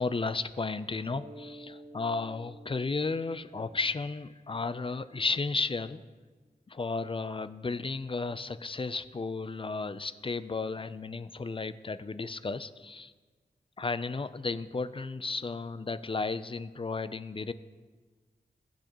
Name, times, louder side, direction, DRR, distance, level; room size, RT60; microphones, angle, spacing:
voice 1, 0.0-6.0 6.7-13.1 13.8-17.5, left 4 dB, 30° left, 13 dB, 0.4 m, -33 dB
Mallet percussion, 1.1-5.6, right 1 dB, 75° right, 1.7 m, -52 dB
15.0 x 6.5 x 2.9 m, 1.4 s
cardioid pair, 45°, 18 cm